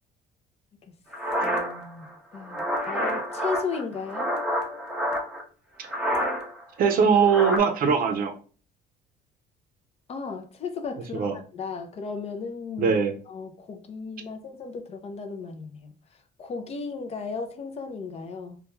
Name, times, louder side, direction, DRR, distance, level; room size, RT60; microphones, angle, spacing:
sound 1, 1.1-5.4 5.8-6.6 6.9-7.6, equal, 5° right, 0.6 m, -28 dB
voice 1, 1.4-4.4 10.1-13.0 13.3-15.9 16.4-18.6, left 4 dB, 40° left, 0.4 m, -35 dB
voice 2, 6.8-8.3 11.1-11.3 12.8-13.1, right 6 dB, 60° right, 0.6 m, -21 dB
2.3 x 2.2 x 3.0 m
cardioid pair, 110°, 17 cm